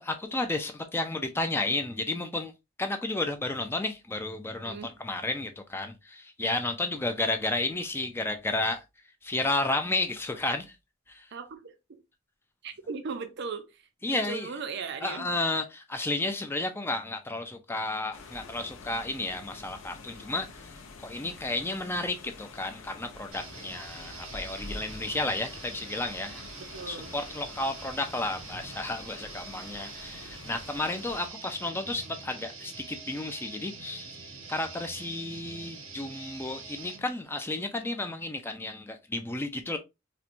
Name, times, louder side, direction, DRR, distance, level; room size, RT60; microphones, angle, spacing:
voice 1, 0.0-2.5 2.8-8.8 9.2-10.8 11.1-11.3 14.0-14.5 15.0-26.4 26.9-39.8, left 2 dB, 10° left, 0.3 m, -32 dB
voice 2, 4.6-4.9 11.3-12.0 12.6-13.8 14.1-15.3 26.3-27.1, right 5 dB, 55° right, 0.4 m, -38 dB
sound 1, 18.1-31.3, left 3 dB, 65° left, 0.6 m, -47 dB
sound 2, 23.3-37.0, right 4 dB, 80° right, 1.1 m, -45 dB
4.3 x 2.2 x 2.5 m
head